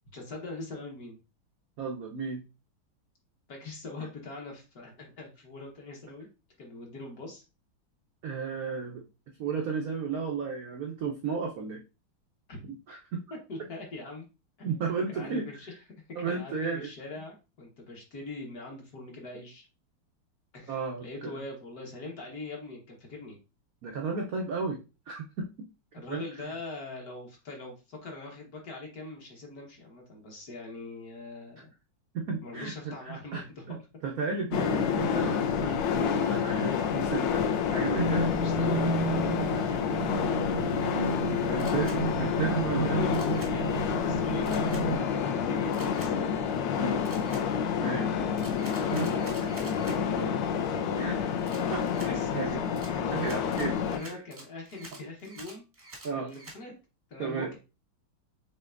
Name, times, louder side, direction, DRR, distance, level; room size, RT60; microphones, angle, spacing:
voice 1, 0.1-1.2 3.5-6.3 6.6-7.4 12.5-12.6 13.5-14.3 14.6-15.7 16.3-19.7 20.5-23.4 25.9-31.7 32.4-33.8 38.0-40.2 42.6-43.7 44.0-46.3 46.7-47.0 47.9-48.2 49.1-49.7 50.1-50.3 52.0-52.6 53.8-55.7 56.1-56.7 57.1-57.6, left 3 dB, 50° left, 0 dB, 1.3 m, -42 dB
voice 2, 1.8-2.4 8.2-9.0 9.4-11.8 12.9-13.2 13.6-13.7 14.6-15.5 16.2-16.9 20.7-21.4 23.8-24.8 25.1-25.5 26.1-26.5 32.1-32.7 33.0-33.8 34.0-38.3 40.8-41.9 42.2-43.0 46.8-47.0 47.8-48.1 48.7-49.1 51.0-51.3 51.6-52.6 53.1-53.8 56.0-56.3 57.2-57.5, right 5 dB, 80° right, 1 dB, 0.7 m, -34 dB
sound 1, 34.5-54.0, left 7 dB, 75° left, 1.1 m, -29 dB
sound 2, 37.9-45.0, right 3 dB, 90° left, 3.2 m, -32 dB
Camera, 41.6-42.0 43.1-43.5 44.5-44.8 45.7-46.1 47.0-47.4 48.4-50.0 51.5-52.1 52.8-56.6, right 2 dB, 25° right, 0.7 m, -48 dB
6.7 x 2.9 x 2.4 m, 0.29 s
omnidirectional pair, 2.3 m